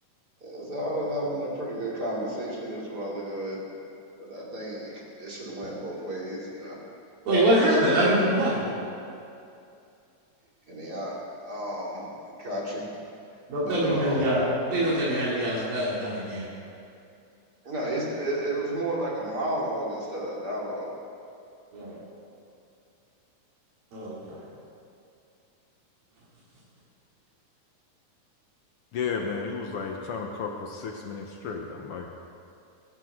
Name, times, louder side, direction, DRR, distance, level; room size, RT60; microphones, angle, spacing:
voice 1, 0.4-3.6 4.2-6.8 10.7-11.2 11.4-12.9 13.6-14.3 17.6-20.9, right 1 dB, 30° right, -5 dB, 3.0 m, -32 dB
voice 2, 7.3-8.6 13.5-16.5 21.7-22.0 23.9-24.4, right 1 dB, 80° right, -8 dB, 4.6 m, -24 dB
voice 3, 28.9-32.1, left 5 dB, 90° left, 2 dB, 1.2 m, -33 dB
23.0 x 14.0 x 3.7 m, 2.6 s
omnidirectional pair, 4.0 m